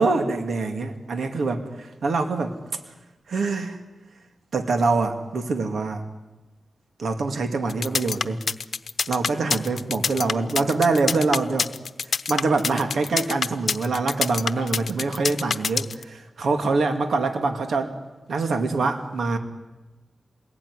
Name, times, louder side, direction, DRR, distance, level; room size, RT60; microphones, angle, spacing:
voice 1, 0.0-2.5 3.3-3.8 4.5-6.0 7.0-8.4 9.1-11.7 12.3-17.9 18.3-19.4, right 3 dB, 80° right, 6 dB, 2.5 m, -24 dB
sound 1, 7.7-16.0, left 5 dB, 70° left, 0.8 m, -26 dB
28.5 x 21.0 x 10.0 m, 1.1 s
cardioid pair, 75°, 0 cm